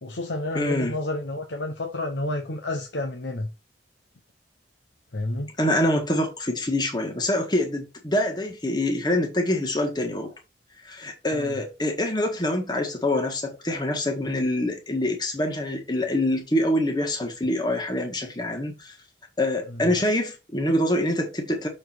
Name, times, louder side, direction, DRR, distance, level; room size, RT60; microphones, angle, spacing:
voice 1, 0.0-3.5 5.1-5.5 11.3-11.6 19.7-19.9, left 1 dB, 75° left, 1.0 m, -30 dB
voice 2, 0.6-1.0 5.6-10.3 10.8-19.0 19.4-21.7, left 1 dB, 25° left, 1.6 m, -25 dB
6.8 x 4.5 x 4.5 m
head